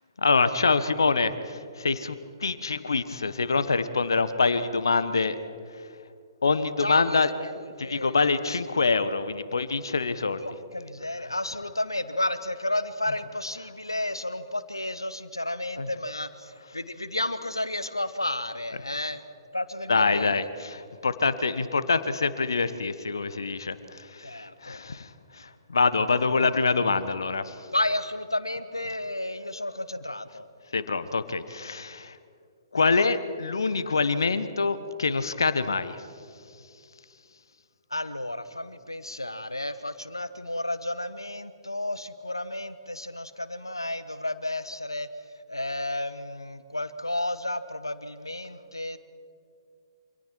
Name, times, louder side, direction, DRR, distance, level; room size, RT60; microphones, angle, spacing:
voice 1, 0.2-5.4 6.4-7.3 7.8-10.4 15.8-15.9 19.9-27.5 30.7-32.2 32.7-36.0, left 4 dB, 65° left, 13 dB, 1.2 m, -25 dB
voice 2, 6.8-8.2 8.5-8.6 10.4-19.2 19.5-20.5 24.2-24.8 27.7-30.5 37.9-45.1 45.5-49.0, left 1 dB, 85° left, 13 dB, 1.4 m, -32 dB
28.5 x 26.0 x 4.6 m, 2.3 s
figure-of-eight pair, 120°, 2 cm